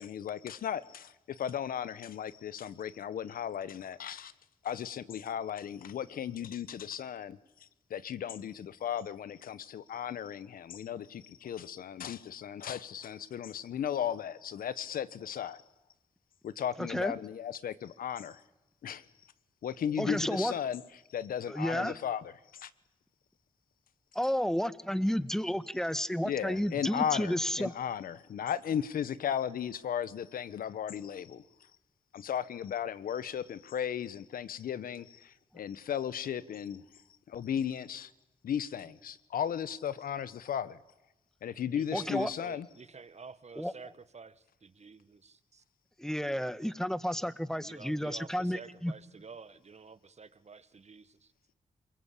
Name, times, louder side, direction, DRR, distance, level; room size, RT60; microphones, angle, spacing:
voice 1, 0.0-4.3 4.6-15.6 16.4-18.4 18.8-19.0 19.6-20.8 21.1-22.7 26.2-31.4 32.1-36.8 37.3-38.1 38.4-40.8 41.4-42.7, left 9 dB, 80° left, 16 dB, 1.2 m, -36 dB
voice 2, 16.8-17.1 20.0-20.5 21.5-21.9 24.1-27.7 41.9-42.3 43.6-43.7 46.0-48.9, equal, 5° left, 14 dB, 1.7 m, -31 dB
voice 3, 41.7-45.6 47.6-51.3, right 5 dB, 50° right, 14 dB, 1.6 m, -50 dB
27.5 x 21.0 x 8.5 m, 0.95 s
supercardioid pair, 45°, 15 cm